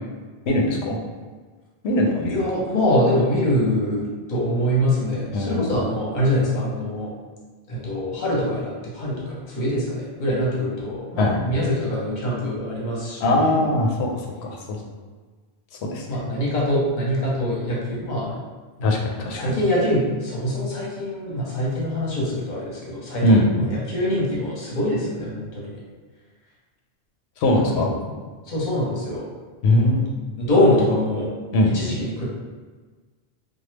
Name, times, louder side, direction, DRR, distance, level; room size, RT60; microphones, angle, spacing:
voice 1, 0.5-1.0 1.8-2.4 5.3-5.7 11.2-11.4 13.2-14.1 14.4-14.8 15.9-16.1 18.8-19.5 23.2-23.5 27.4-27.9 29.6-30.1 31.5-31.7, left 1 dB, 75° left, 1 dB, 0.8 m, -20 dB
voice 2, 2.3-7.1 7.7-13.6 16.1-18.3 18.8-18.9 19.2-25.8 27.5-28.2 28.5-29.2 29.7-30.0 30.4-31.3 31.7-32.2, left 1 dB, 45° left, -4 dB, 0.9 m, -24 dB
2.9 x 2.2 x 3.2 m, 1.4 s
omnidirectional pair, 1.1 m